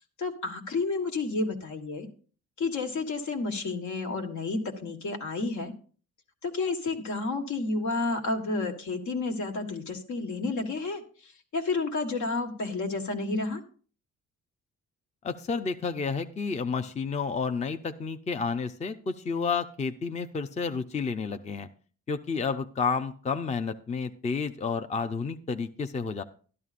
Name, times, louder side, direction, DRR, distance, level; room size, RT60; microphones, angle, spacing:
voice 1, 0.2-2.1 2.6-5.7 6.4-13.6, left 3 dB, 70° left, 4 dB, 1.6 m, -31 dB
voice 2, 15.2-21.7 22.1-26.2, left 5 dB, 25° left, 9 dB, 0.5 m, -30 dB
12.5 x 11.0 x 2.5 m, 0.41 s
cardioid pair, 90°, 30 cm